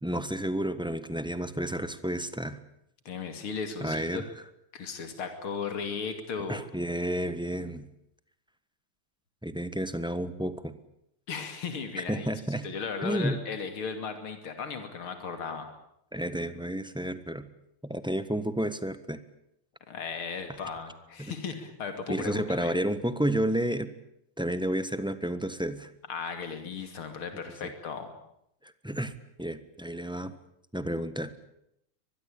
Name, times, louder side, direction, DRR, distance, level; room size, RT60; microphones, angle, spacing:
voice 1, 0.0-2.6 3.8-4.2 6.5-7.8 9.4-10.7 12.1-12.6 13.0-13.4 16.1-17.4 17.8-19.2 21.2-21.3 22.1-23.9 24.4-25.9 28.6-30.3 30.7-31.3, right 1 dB, 5° right, 12 dB, 0.9 m, -31 dB
voice 2, 3.1-4.2 4.7-6.6 11.3-15.7 19.9-22.7 26.1-28.1, left 5 dB, 75° left, 7 dB, 3.5 m, -36 dB
24.0 x 21.0 x 8.8 m, 0.77 s
omnidirectional pair, 2.4 m